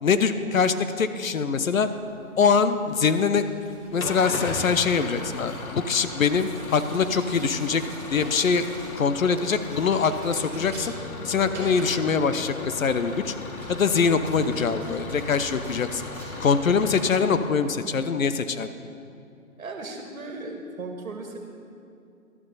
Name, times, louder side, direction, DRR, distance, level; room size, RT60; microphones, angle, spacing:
voice 1, 0.0-1.9 2.4-3.5 3.9-7.8 8.1-10.9 11.2-13.3 13.7-16.1 16.4-18.7, left 5 dB, 70° left, 11 dB, 0.8 m, -23 dB
sound 1, 1.5-17.5, right 1 dB, 5° right, 2.2 m, -46 dB
Engine starting / Idling, 4.0-18.2, left 3 dB, 85° left, 1.6 m, -37 dB
voice 2, 19.6-21.4, right 3 dB, 70° right, 3 dB, 1.8 m, -36 dB
13.0 x 12.5 x 4.0 m, 2.6 s
hypercardioid pair, 160°, 42 cm